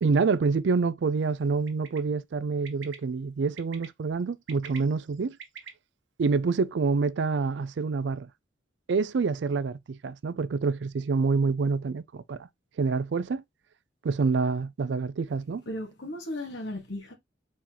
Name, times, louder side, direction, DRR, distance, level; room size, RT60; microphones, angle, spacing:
voice 1, 0.0-5.4 6.2-8.3 8.9-12.4 12.8-13.4 14.0-15.6, right 4 dB, 70° right, 0.4 m, -27 dB
Bird, 1.7-2.0 2.6-2.9 3.6-3.9 4.3-5.7, right 7 dB, 85° right, 1.1 m, -44 dB
voice 2, 15.6-17.1, left 1 dB, 75° left, 1.7 m, -36 dB
4.3 x 3.8 x 3.0 m
head